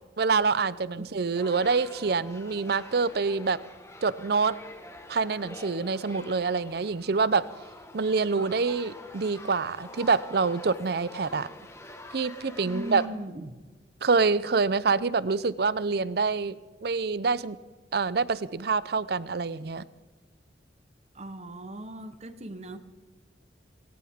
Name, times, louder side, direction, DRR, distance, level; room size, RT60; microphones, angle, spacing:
voice 1, 0.0-3.6 4.0-4.6 5.1-7.5 7.9-11.5 12.1-13.0 14.0-16.6 16.8-17.6 17.9-19.9, right 4 dB, 60° right, 0.5 m, -26 dB
sound 1, 1.4-13.1, left 2 dB, 15° left, 1.4 m, -46 dB
voice 2, 12.6-13.6 21.1-22.8, right 1 dB, 35° right, 1.0 m, -38 dB
19.0 x 18.0 x 3.6 m
head